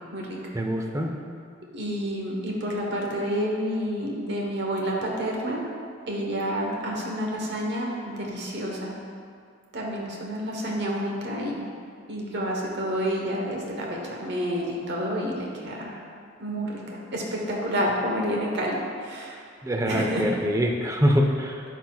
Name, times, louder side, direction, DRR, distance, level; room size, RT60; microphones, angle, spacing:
voice 1, 0.5-1.1 19.6-21.6, equal, 15° right, 2 dB, 0.5 m, -24 dB
voice 2, 1.7-5.6 6.1-8.9 9.7-11.6 12.1-16.0 16.4-19.4 19.9-20.3, equal, 65° right, -1 dB, 1.1 m, -29 dB
11.5 x 4.1 x 2.3 m, 2.2 s
head